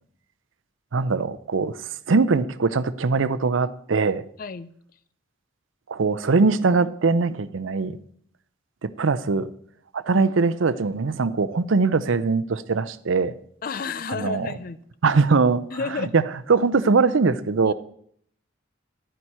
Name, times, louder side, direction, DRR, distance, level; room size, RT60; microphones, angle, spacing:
voice 1, 0.9-1.8 2.1-4.2 5.9-8.0 8.8-9.5 9.9-13.3 14.2-14.5 15.0-15.6 16.0-16.2 16.5-17.7, right 4 dB, 75° right, 15 dB, 0.6 m, -21 dB
voice 2, 4.4-4.7 13.6-14.8 15.7-16.1 17.7-17.8, left 5 dB, 45° left, 16 dB, 0.4 m, -31 dB
11.0 x 9.2 x 4.3 m, 0.62 s
head